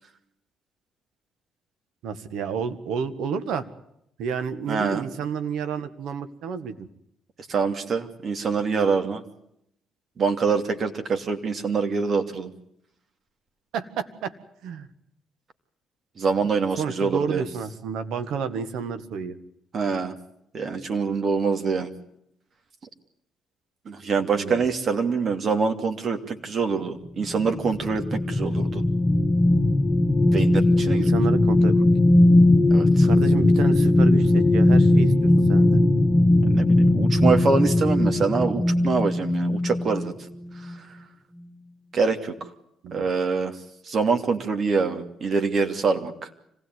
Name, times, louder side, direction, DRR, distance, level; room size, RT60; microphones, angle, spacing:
voice 1, 2.0-3.6 4.2-6.9 13.7-14.3 14.6-14.9 16.8-19.4 24.2-24.7 31.0-31.9 33.0-35.8 42.8-43.1, right 6 dB, 75° right, 10 dB, 1.7 m, -30 dB
voice 2, 4.7-5.0 7.5-9.2 10.2-12.5 16.2-17.4 19.7-20.1 20.5-21.9 23.9-28.8 30.3-31.1 32.7-33.1 36.4-40.1 40.6-40.8 41.9-42.3 42.9-43.6 43.9-46.3, right 5 dB, 50° right, 6 dB, 2.8 m, -25 dB
sound 1, 27.2-40.1 40.6-40.7, left 1 dB, 25° left, 1.7 m, -19 dB
26.0 x 17.0 x 9.5 m, 0.77 s
supercardioid pair, 65°, 0 cm